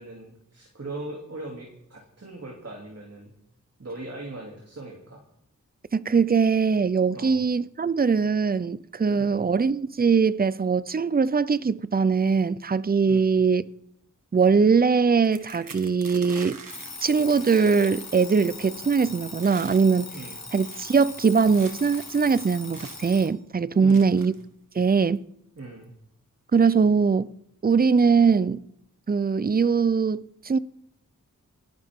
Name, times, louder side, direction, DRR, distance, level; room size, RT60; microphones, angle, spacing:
voice 1, 0.0-3.3 3.8-5.2 7.1-7.4 9.2-9.4 13.1-13.3 20.1-20.4 23.8-24.2 25.6-25.9, right 2 dB, 50° right, 2.9 m, -40 dB
voice 2, 5.9-13.6 14.3-16.6 17.0-20.1 20.5-24.3 24.7-25.2 26.5-27.3 27.6-28.6 29.1-30.6, right 5 dB, 30° right, 0.5 m, -21 dB
sound 1, 15.2-18.6 18.9-19.1 19.4-19.9 20.4-23.1 23.9-24.4 25.2-25.3 25.6-25.8, right 4 dB, 80° right, 1.6 m, -45 dB
Alarm, 16.7-23.4, left 4 dB, 55° left, 1.5 m, -40 dB
27.5 x 11.0 x 3.7 m
wide cardioid pair, 65°, 33 cm